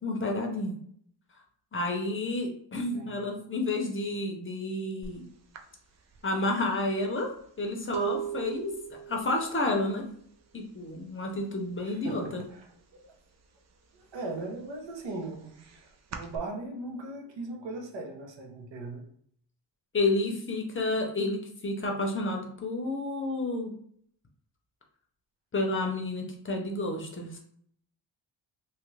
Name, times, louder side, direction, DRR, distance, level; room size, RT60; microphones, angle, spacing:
voice 1, 0.0-0.8 1.7-5.2 6.2-7.3 7.6-8.7 9.1-10.1 10.5-12.4 19.9-23.7 25.5-27.4, left 2 dB, 30° left, 2 dB, 0.6 m, -30 dB
sound 1, 5.0-5.2 5.5-11.2 11.5-12.0 12.3-13.4 13.8-16.4, right 10 dB, 40° right, 0.4 m, -40 dB
voice 2, 11.8-13.1 14.0-19.0, right 2 dB, 80° right, 2 dB, 0.8 m, -39 dB
2.8 x 2.4 x 3.1 m, 0.62 s
wide cardioid pair, 120°, 43 cm